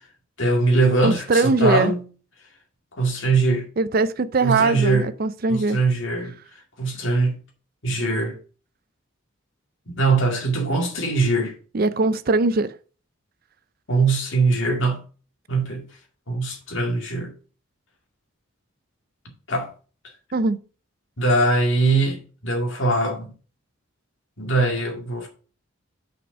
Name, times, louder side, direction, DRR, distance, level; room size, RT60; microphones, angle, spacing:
voice 1, 0.4-2.0 2.9-3.7 4.4-5.1 5.5-6.4 6.8-7.4 7.8-8.4 9.9-11.5 13.9-15.0 15.5-15.8 16.3-17.3 19.5-19.7 21.2-23.3 24.4-25.3, right 3 dB, 60° left, 2.2 m, -21 dB
voice 2, 1.0-1.9 3.8-5.8 11.7-12.7 20.3-20.6, right 3 dB, 45° right, 0.5 m, -21 dB
6.0 x 5.2 x 5.0 m
head